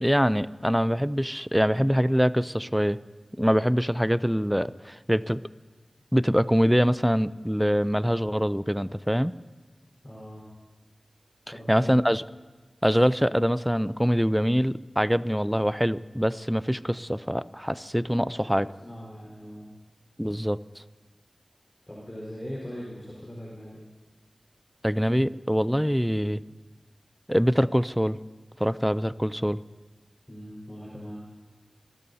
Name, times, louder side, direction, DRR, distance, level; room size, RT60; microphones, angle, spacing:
voice 1, 0.0-3.0 3.4-5.4 6.1-9.3 11.7-12.2 12.8-18.7 20.2-20.6 24.8-26.4 27.3-28.2 28.6-29.6, equal, ahead, 16 dB, 0.4 m, -24 dB
voice 2, 10.0-10.4 11.5-11.9 18.4-19.7 21.9-23.8 30.3-31.2, equal, 15° left, -8 dB, 4.6 m, -40 dB
27.5 x 14.0 x 2.8 m, 1.4 s
wide cardioid pair, 65°, 0 cm